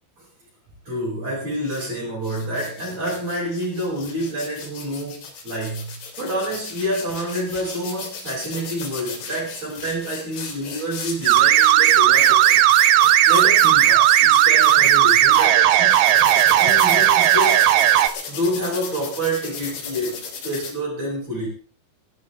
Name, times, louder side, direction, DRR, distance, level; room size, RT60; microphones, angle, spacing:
voice 1, 0.9-12.6 13.2-16.0 16.6-17.8 18.3-21.5, equal, 45° right, -6 dB, 9.1 m, -28 dB
sound 1, 1.6-1.9 2.2-15.5 15.9-20.7, left 5 dB, 80° left, 5.2 m, -35 dB
sound 2, 11.3-18.1, right 12 dB, 75° right, 2.7 m, -15 dB
18.5 x 14.5 x 3.7 m, 0.39 s
omnidirectional pair, 4.5 m